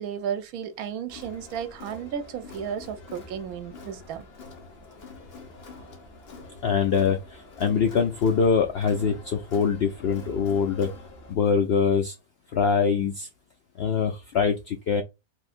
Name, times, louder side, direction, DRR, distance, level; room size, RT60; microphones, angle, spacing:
voice 1, 0.0-4.3, right 8 dB, 75° right, 1.1 m, -33 dB
Crowd, 1.1-11.3, left 3 dB, 45° left, 1.0 m, -46 dB
voice 2, 6.6-10.9 11.3-12.1 12.5-13.3 13.8-15.0, left 6 dB, 75° left, 0.5 m, -23 dB
3.4 x 2.6 x 2.4 m
omnidirectional pair, 1.6 m